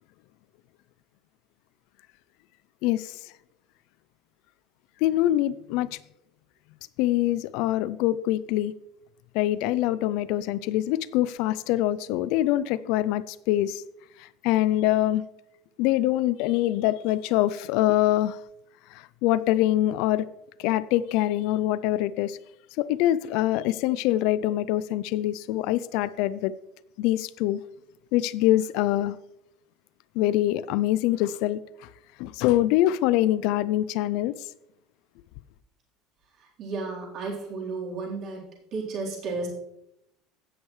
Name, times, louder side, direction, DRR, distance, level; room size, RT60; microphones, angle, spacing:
voice 1, 2.8-3.2 5.0-6.0 7.0-8.7 9.3-13.8 14.2-15.2 15.8-18.4 18.9-20.3 20.6-22.4 22.8-26.5 27.0-27.6 28.1-29.2 30.2-31.6 32.2-34.3, left 14 dB, 70° left, 0.4 m, -24 dB
voice 2, 36.4-39.5, right 3 dB, 45° right, 3.9 m, -33 dB
16.5 x 6.4 x 3.2 m
supercardioid pair, 125°, 0 cm